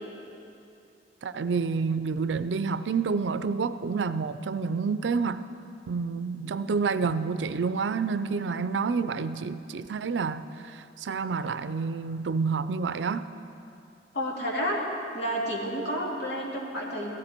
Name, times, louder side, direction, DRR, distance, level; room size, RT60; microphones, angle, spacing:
voice 1, 1.2-5.4 5.9-13.3, right 5 dB, 90° right, 13 dB, 0.4 m, -29 dB
voice 2, 14.1-14.8 15.1-17.1, equal, 65° left, -3 dB, 2.3 m, -30 dB
15.0 x 12.5 x 4.4 m, 2.7 s
head